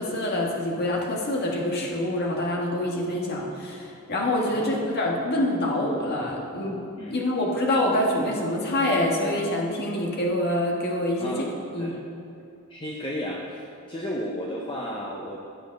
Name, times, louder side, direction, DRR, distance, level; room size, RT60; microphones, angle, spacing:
voice 1, 0.0-6.8 7.1-11.5 11.7-11.9, left 1 dB, 50° left, -2 dB, 1.7 m, -26 dB
voice 2, 12.7-13.6 13.9-15.4, equal, 25° left, -2 dB, 0.8 m, -33 dB
11.0 x 7.2 x 5.3 m, 2.6 s
head